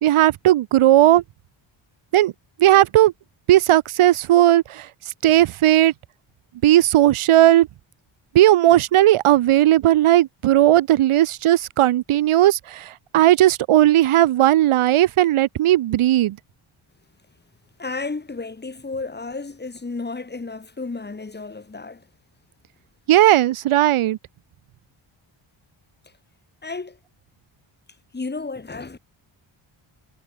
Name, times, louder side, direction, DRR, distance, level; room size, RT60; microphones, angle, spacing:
voice 1, 0.0-1.2 2.1-2.3 2.6-3.1 3.5-4.9 5.2-5.9 6.6-7.7 8.3-16.4 23.1-24.2, right 14 dB, 85° right, 1.2 m, -16 dB
voice 2, 17.8-22.1 26.6-27.0 28.1-29.0, left 3 dB, 20° left, 7.1 m, -32 dB
wide cardioid pair, 160°, 49 cm